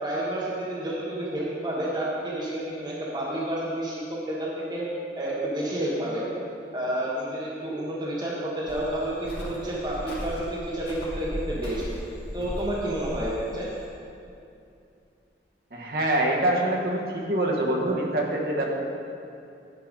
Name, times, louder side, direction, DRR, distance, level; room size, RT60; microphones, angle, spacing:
voice 1, 0.0-4.9 5.2-6.2 6.7-11.8 12.3-13.7, right 1 dB, 25° right, -7 dB, 1.3 m, -30 dB
Cricket, 8.7-13.8, equal, 60° left, 2.1 m, -37 dB
voice 2, 15.7-18.7, right 1 dB, 55° right, -2 dB, 1.2 m, -25 dB
10.5 x 4.6 x 5.2 m, 2.6 s
head